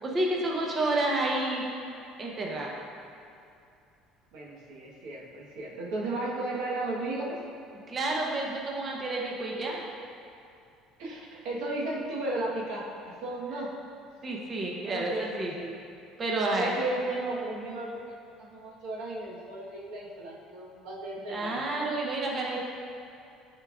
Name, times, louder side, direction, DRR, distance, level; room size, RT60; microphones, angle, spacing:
voice 1, 0.0-1.6 2.2-2.7 7.9-9.8 14.2-15.5 16.2-16.7 21.3-22.6, right 2 dB, 30° right, -2 dB, 0.8 m, -30 dB
voice 2, 4.3-7.4 11.0-13.7 14.8-15.8 16.5-17.9 18.4-21.6, right 2 dB, 75° right, -4 dB, 1.3 m, -35 dB
10.0 x 4.5 x 2.5 m, 2.6 s
cardioid pair, 130°, 0 cm